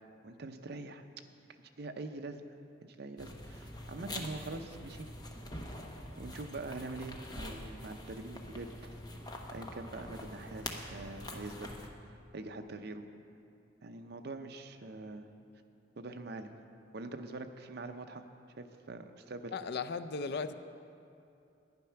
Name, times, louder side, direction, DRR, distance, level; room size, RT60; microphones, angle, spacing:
voice 1, 0.2-1.0 1.8-2.4 2.8-5.1 6.2-9.0 9.5-11.7 12.3-13.1 13.8-15.2 16.0-16.5 16.9-18.2 18.6-19.5, right 2 dB, 60° right, 7 dB, 0.7 m, -44 dB
sound 1, 3.2-11.9, left 1 dB, 20° left, 0.9 m, -45 dB
voice 2, 19.5-20.5, left 5 dB, 60° left, 11 dB, 0.4 m, -36 dB
10.5 x 10.0 x 5.7 m, 2.6 s
head